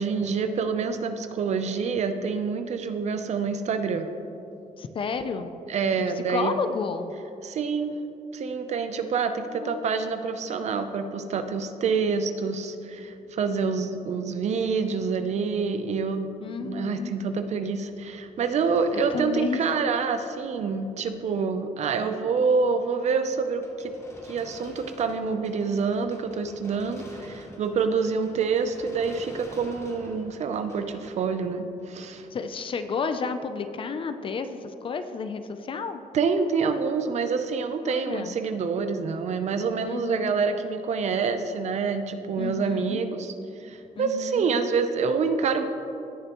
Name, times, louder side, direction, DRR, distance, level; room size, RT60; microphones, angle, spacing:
voice 1, 0.0-4.1 5.7-6.5 7.4-8.0 8.3-16.3 16.6-23.9 24.3-32.3 36.1-43.3 43.6-45.6, right 5 dB, 55° right, 8 dB, 0.6 m, -27 dB
voice 2, 4.8-5.5 6.2-7.1 9.5-10.0 16.4-17.1 19.1-19.6 32.3-36.0 37.9-38.4 39.9-40.3 42.4-43.0 44.0-44.4, left 5 dB, 40° left, 9 dB, 0.5 m, -31 dB
sound 1, 16.4-20.2 20.6-20.7 21.4-21.5 21.9-22.2 22.8-33.3, left 1 dB, 20° left, 1.1 m, -48 dB
17.0 x 6.7 x 3.0 m, 2.8 s
cardioid pair, 145°, 14 cm